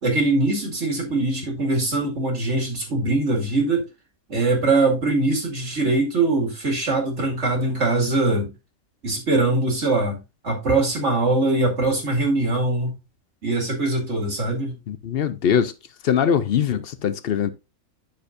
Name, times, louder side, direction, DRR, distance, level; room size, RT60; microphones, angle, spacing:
voice 1, 0.0-3.9 4.3-8.5 9.0-10.2 10.4-12.9 13.4-14.8, right 2 dB, 55° right, 2.6 m, -22 dB
voice 2, 14.9-15.7 16.0-17.5, left 8 dB, 55° left, 0.7 m, -22 dB
9.6 x 6.6 x 2.6 m
omnidirectional pair, 1.4 m